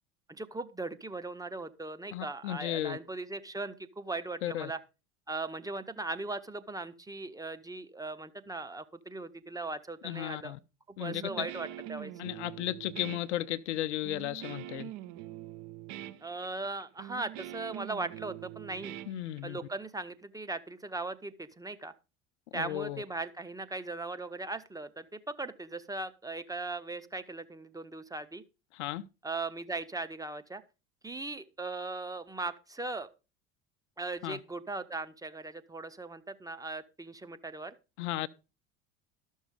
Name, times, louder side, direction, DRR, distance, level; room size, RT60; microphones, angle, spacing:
voice 1, 0.3-4.8 5.3-10.5 10.9-12.1 16.2-18.9 19.4-21.9 22.5-28.4 29.2-30.6 31.0-33.1 34.0-37.7, right 3 dB, 10° right, 0.9 m, -39 dB
voice 2, 2.1-3.0 4.4-4.7 10.0-10.6 11.0-11.5 12.2-14.9 19.1-19.6 22.5-23.0 28.7-29.0 34.2-34.4 38.0-38.3, left 14 dB, 60° left, 0.7 m, -35 dB
Guitar, 11.1-19.8, right 14 dB, 45° right, 0.8 m, -44 dB
13.0 x 6.4 x 5.3 m
figure-of-eight pair, 65°, 39 cm